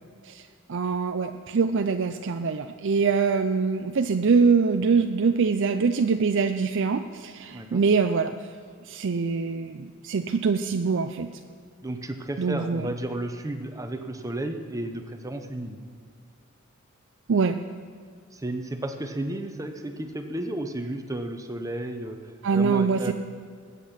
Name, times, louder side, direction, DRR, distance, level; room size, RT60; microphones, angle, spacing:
voice 1, 0.2-8.3 8.9-11.3 12.4-12.9 17.3-17.6 22.4-23.1, right 5 dB, 60° right, 7 dB, 0.5 m, -24 dB
voice 2, 7.5-7.8 11.8-15.8 18.3-23.1, right 1 dB, 15° right, 6 dB, 0.8 m, -33 dB
20.5 x 8.4 x 5.8 m, 2.1 s
head